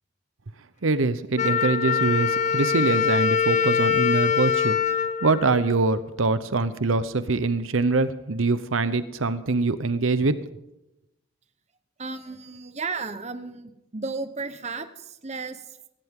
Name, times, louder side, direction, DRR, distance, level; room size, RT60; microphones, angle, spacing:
voice 1, 0.8-10.4, right 3 dB, 85° right, 13 dB, 0.9 m, -24 dB
Wind instrument woodwind instrument, 1.4-6.2, left 7 dB, 35° left, 0.5 m, -24 dB
voice 2, 12.0-15.6, right 4 dB, 35° right, 10 dB, 1.0 m, -34 dB
18.0 x 16.0 x 3.7 m, 0.88 s
head